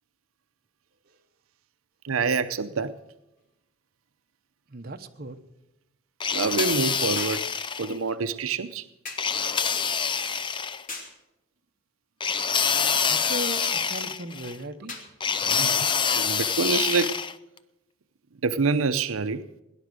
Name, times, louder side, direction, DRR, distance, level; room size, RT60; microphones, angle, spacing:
voice 1, 2.0-2.9 6.3-7.5 7.8-8.9 15.4-17.2 18.4-19.5, right 4 dB, 85° right, 10 dB, 0.7 m, -27 dB
sound 1, 3.4-3.5 7.2-7.5 9.1-9.4 10.9-11.2 13.6-13.9 14.9-15.2 16.2-16.4, left 3 dB, 40° left, 2.6 m, -39 dB
voice 2, 4.7-5.4 13.1-14.9, right 1 dB, 50° right, 6 dB, 1.0 m, -37 dB
sound 2, 6.2-7.9 9.2-10.8 12.2-14.5 15.2-17.3, left 6 dB, 25° left, 0.5 m, -26 dB
18.0 x 10.5 x 6.3 m, 0.93 s
head